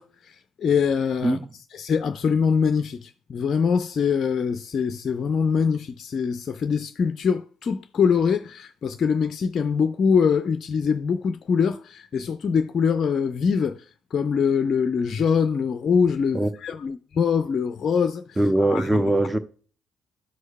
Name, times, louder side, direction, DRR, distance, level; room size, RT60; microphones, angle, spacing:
voice 1, 0.0-1.4 1.8-13.8 14.1-18.2 18.6-19.0, left 6 dB, 45° left, 0.4 m, -23 dB
voice 2, 18.4-19.4, right 1 dB, 15° right, 0.7 m, -21 dB
12.5 x 6.3 x 2.2 m
figure-of-eight pair, 45°, 0 cm